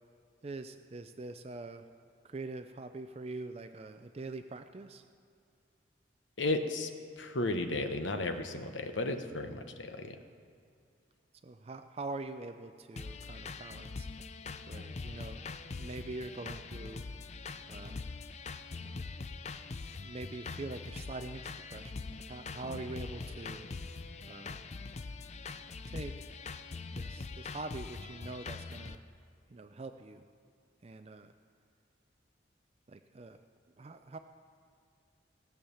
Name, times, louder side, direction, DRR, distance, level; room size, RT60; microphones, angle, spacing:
voice 1, 0.4-1.9 2.2-5.1 11.4-14.1 14.7-15.4 15.8-17.1 17.7-18.1 18.7-19.0 20.0-23.7 24.2-24.6 25.9-26.1 26.9-29.0 29.5-30.3 30.8-31.3 32.9-33.4 33.8-34.2, right 3 dB, 30° right, 8 dB, 0.4 m, -44 dB
voice 2, 6.4-6.9 7.2-10.2 22.7-22.8, left 2 dB, 80° left, 6 dB, 1.1 m, -34 dB
sound 1, 13.0-28.9, left 4 dB, 35° left, 0.4 m, -43 dB
17.5 x 7.2 x 7.0 m, 2.4 s
head